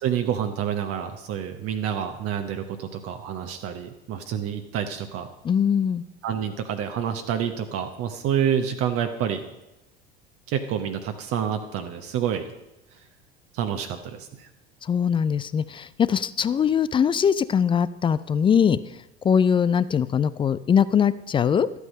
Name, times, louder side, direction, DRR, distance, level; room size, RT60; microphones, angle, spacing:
voice 1, 0.0-5.3 6.2-9.4 10.5-12.4 12.9-13.0 13.5-14.5, right 9 dB, 45° right, 6 dB, 1.1 m, -28 dB
voice 2, 5.4-6.0 14.8-18.8 19.2-21.7, left 7 dB, 15° left, 17 dB, 0.3 m, -21 dB
13.0 x 8.4 x 5.4 m, 0.93 s
figure-of-eight pair, 70°, 33 cm